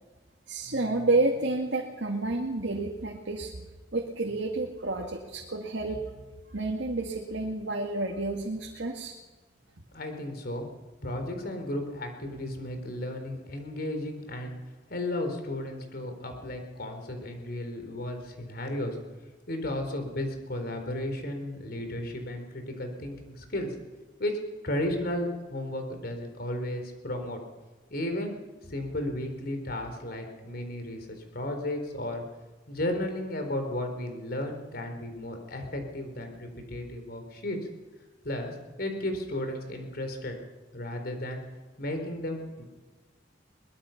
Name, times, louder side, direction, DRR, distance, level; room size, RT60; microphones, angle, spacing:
voice 1, 0.5-3.7 3.9-6.1 6.5-9.1, right 2 dB, 85° right, 1 dB, 2.0 m, -30 dB
voice 2, 9.9-10.7 11.0-14.5 14.9-19.0 19.5-23.7 24.2-24.4 24.6-27.4 27.9-28.3 28.7-32.2 32.7-37.6 38.2-40.4 40.7-41.4 41.8-42.6, left 1 dB, 60° left, 5 dB, 4.1 m, -34 dB
23.0 x 20.5 x 5.9 m, 1.3 s
head